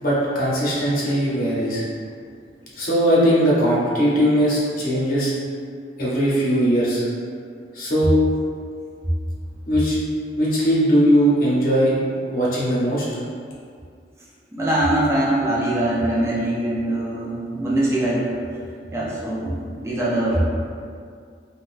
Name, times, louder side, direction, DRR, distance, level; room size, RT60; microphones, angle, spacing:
voice 1, 0.0-1.8 2.8-5.3 6.0-7.0 7.7-8.2 9.7-10.0 10.4-11.9 12.3-13.1, equal, 50° left, -7 dB, 0.8 m, -19 dB
voice 2, 14.5-18.3 18.9-20.5, right 1 dB, 15° right, -7 dB, 0.5 m, -22 dB
3.6 x 2.3 x 2.6 m, 2.2 s
head